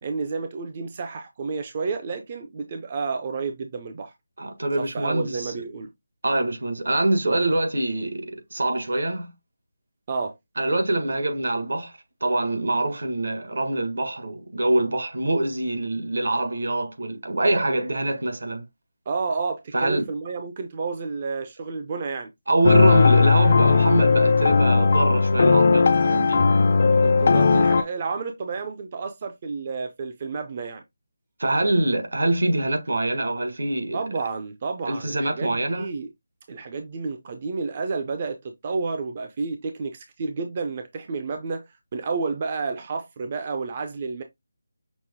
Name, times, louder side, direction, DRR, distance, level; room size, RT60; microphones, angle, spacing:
voice 1, 0.0-4.1 4.8-5.9 10.1-10.3 19.1-22.3 27.0-30.8 33.9-36.1 36.5-41.6 41.9-44.2, right 4 dB, 30° right, 0.4 m, -30 dB
voice 2, 4.4-5.5 6.2-9.3 10.6-11.9 12.2-18.6 19.7-20.1 22.5-26.5 31.4-34.0 34.9-35.9, right 2 dB, 70° right, 1.3 m, -24 dB
sound 1, 22.6-27.8, left 4 dB, 40° left, 0.4 m, -17 dB
6.0 x 2.1 x 3.5 m
figure-of-eight pair, 170°, 0 cm